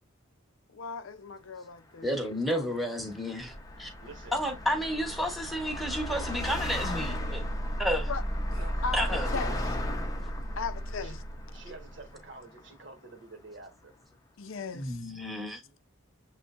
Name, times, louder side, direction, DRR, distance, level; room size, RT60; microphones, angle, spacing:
voice 1, 0.7-2.7 8.1-8.2 8.8-9.1 9.3-9.5 10.6-11.2 14.4-15.0, left 5 dB, 75° left, 0.5 m, -37 dB
Car passing by, 1.9-13.4, left 2 dB, 15° left, 0.7 m, -41 dB
voice 2, 2.0-3.9 4.3-7.4 7.8-8.1 8.9-9.3 14.7-15.6, equal, ahead, 1.0 m, -31 dB
sound 1, 3.4-12.2, equal, 25° right, 0.5 m, -35 dB
voice 3, 4.0-4.3 8.5-9.6 11.0-11.2 11.5-13.9, right 3 dB, 55° right, 1.2 m, -48 dB
6.9 x 3.1 x 2.4 m
head